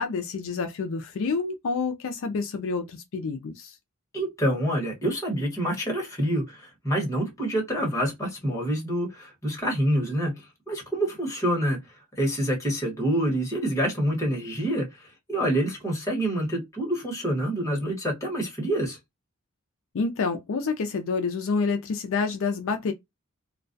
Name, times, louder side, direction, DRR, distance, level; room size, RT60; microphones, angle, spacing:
voice 1, 0.0-3.7 19.9-22.9, left 4 dB, 60° left, 0.4 m, -28 dB
voice 2, 4.1-11.8 12.2-19.0, right 1 dB, 15° left, 1.0 m, -27 dB
2.2 x 2.2 x 2.5 m
head